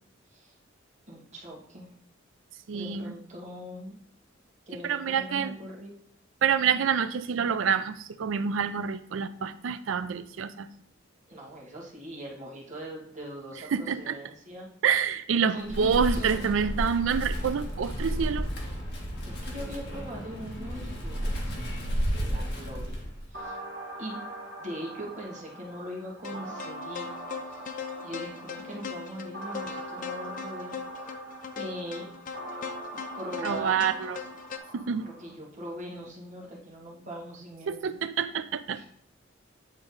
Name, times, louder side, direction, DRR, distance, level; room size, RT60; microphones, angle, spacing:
voice 1, 1.1-1.9 2.7-4.0 4.7-5.9 11.3-14.7 15.4-16.7 19.3-21.6 22.2-23.0 23.3-23.6 24.0-24.2 24.6-27.1 27.5-27.6 28.0-30.8 31.6-32.1 33.1-33.9 35.0-38.0 38.7-38.8, equal, 40° right, -4 dB, 1.9 m, -41 dB
voice 2, 2.7-3.1 4.8-5.6 6.4-10.7 13.7-14.2 14.8-18.5 33.4-34.2 34.7-35.1 37.7-38.8, right 7 dB, 75° right, 13 dB, 0.4 m, -27 dB
Wind, 15.6-23.3, equal, 60° left, 1.6 m, -32 dB
sound 1, 23.3-35.3, right 1 dB, 55° right, 1.5 m, -42 dB
sound 2, 26.2-34.6, left 6 dB, 40° left, 0.4 m, -40 dB
8.8 x 3.9 x 3.9 m, 0.64 s
head